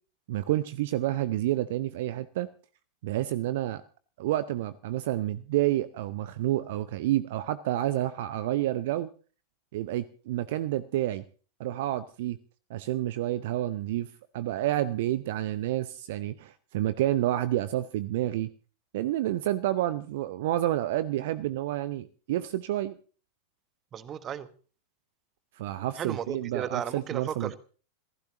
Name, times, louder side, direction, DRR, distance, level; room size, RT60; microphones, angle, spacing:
voice 1, 0.3-2.5 3.0-3.8 4.2-9.1 9.7-11.2 11.6-12.4 12.7-14.1 14.3-18.5 18.9-22.9 25.6-27.6, right 14 dB, 55° right, 16 dB, 0.7 m, -29 dB
voice 2, 23.9-24.5 26.0-27.6, right 9 dB, 25° right, 14 dB, 1.4 m, -34 dB
28.0 x 15.5 x 3.0 m, 0.39 s
figure-of-eight pair, 90°, 0 cm